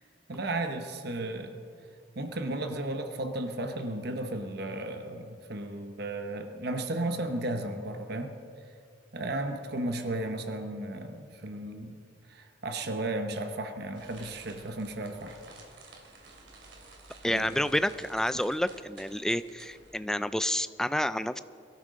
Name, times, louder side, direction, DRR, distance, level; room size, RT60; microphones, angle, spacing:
voice 1, 0.3-1.6 2.1-8.4 9.1-12.0 12.3-15.4 17.2-17.5, right 1 dB, 60° right, 6 dB, 1.0 m, -34 dB
sound 1, 13.9-20.0, right 3 dB, 90° right, 2.7 m, -52 dB
voice 2, 17.2-21.4, left 1 dB, 5° left, 13 dB, 0.3 m, -29 dB
22.5 x 13.5 x 3.8 m, 2.4 s
head